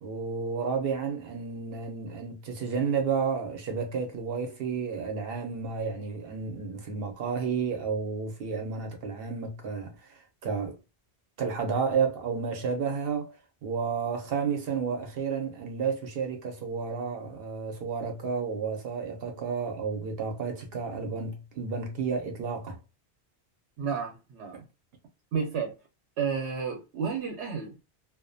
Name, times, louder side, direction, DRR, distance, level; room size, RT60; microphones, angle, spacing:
voice 1, 0.0-10.8 11.4-13.4 13.6-22.8, right 5 dB, 65° right, 0.8 m, -31 dB
voice 2, 23.8-24.6 25.3-25.8 26.2-27.8, right 6 dB, 90° right, 0.9 m, -31 dB
2.5 x 2.1 x 2.5 m
omnidirectional pair, 1.1 m